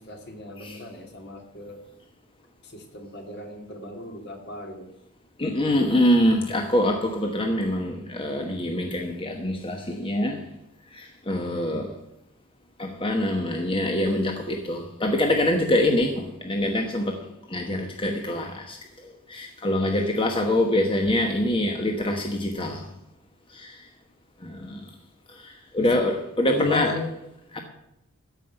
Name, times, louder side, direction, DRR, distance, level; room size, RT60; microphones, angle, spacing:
voice 1, 0.0-1.8 2.6-4.9 25.8-25.9 26.5-27.1, left 2 dB, 50° left, 4 dB, 2.3 m, -36 dB
voice 2, 5.4-10.5 10.9-12.0 12.8-22.9 23.5-23.9 24.4-24.9 25.3-26.9 27.5-27.6, left 1 dB, 25° left, 3 dB, 1.1 m, -25 dB
13.5 x 5.6 x 8.8 m, 0.87 s
head